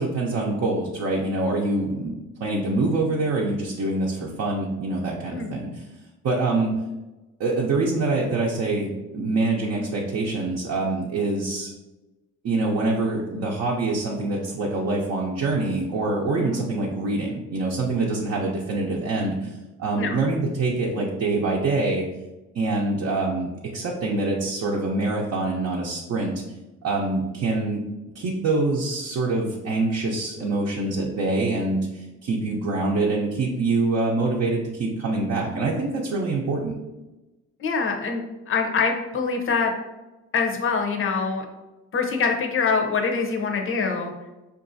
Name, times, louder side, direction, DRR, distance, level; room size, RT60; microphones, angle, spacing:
voice 1, 0.0-2.1 2.4-5.9 6.2-6.8 7.4-11.7 12.4-22.1 22.5-26.4 26.8-27.8 28.1-36.8, right 2 dB, 55° right, -3 dB, 0.7 m, -25 dB
voice 2, 37.6-39.7 40.3-41.5 41.9-44.1, left 5 dB, 45° left, 3 dB, 0.7 m, -24 dB
4.7 x 2.6 x 2.6 m, 1.1 s
cardioid pair, 90°, 30 cm